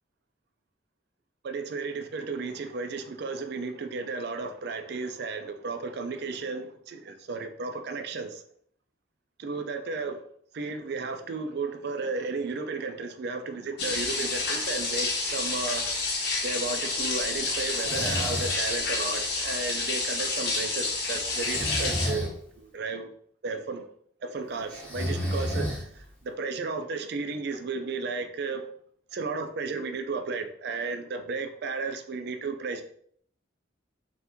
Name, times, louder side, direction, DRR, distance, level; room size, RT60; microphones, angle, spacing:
voice 1, 1.4-8.4 9.4-10.2 10.5-15.9 16.4-23.1 23.4-23.8 24.2-28.6 29.1-32.8, right 4 dB, 55° right, 0.4 m, -34 dB
sound 1, 13.8-22.1, left 3 dB, 60° left, 0.8 m, -29 dB
Breathing, 17.7-18.6 21.3-22.3 24.7-26.1, equal, 10° left, 0.7 m, -31 dB
2.8 x 2.5 x 3.5 m
head